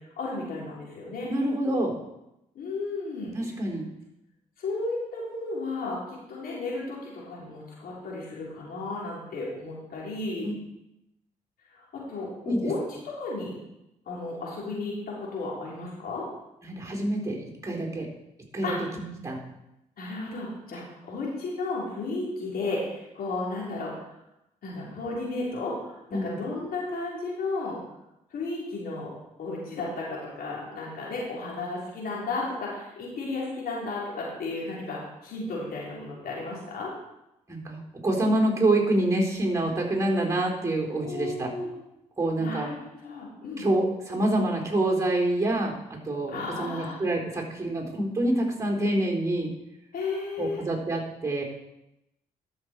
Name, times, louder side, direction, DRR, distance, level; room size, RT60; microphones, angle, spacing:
voice 1, 0.2-1.3 2.5-3.3 4.6-6.0 6.3-10.5 11.7-11.8 12.1-12.8 13.0-13.5 14.1-16.2 18.6-18.8 20.0-23.9 24.6-27.8 28.3-29.1 29.4-36.9 41.0-41.7 42.4-43.6 46.3-46.9 49.9-50.6, left 3 dB, 70° left, -4 dB, 3.9 m, -33 dB
voice 2, 1.3-1.9 3.3-3.9 10.4-10.5 12.5-12.6 16.6-18.1 18.5-19.4 26.1-26.4 37.5-41.5 42.2-42.7 43.6-45.8 46.1-49.5 50.4-51.4, right 1 dB, 20° right, -1 dB, 3.7 m, -26 dB
12.5 x 6.4 x 4.5 m, 0.88 s
supercardioid pair, 50°, 16 cm